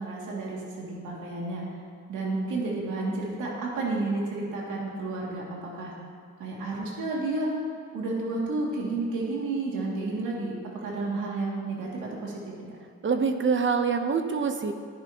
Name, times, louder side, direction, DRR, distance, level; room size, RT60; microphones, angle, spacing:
voice 1, 0.0-1.7 2.1-5.9 6.4-7.5 7.9-12.5, right 2 dB, 85° right, -3 dB, 2.6 m, -31 dB
voice 2, 13.0-14.7, right 5 dB, 40° right, 7 dB, 0.9 m, -25 dB
14.5 x 10.5 x 3.0 m, 2.3 s
cardioid pair, 90°, 30 cm